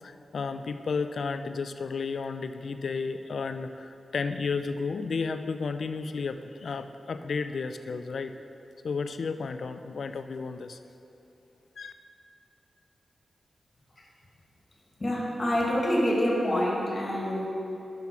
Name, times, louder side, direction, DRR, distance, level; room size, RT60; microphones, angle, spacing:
voice 1, 0.0-8.3 8.8-10.8 11.8-11.9, left 4 dB, 75° left, 9 dB, 0.4 m, -32 dB
voice 2, 15.0-17.5, equal, 40° left, -2 dB, 1.7 m, -26 dB
6.0 x 5.7 x 5.8 m, 2.9 s
cardioid pair, 60°, 0 cm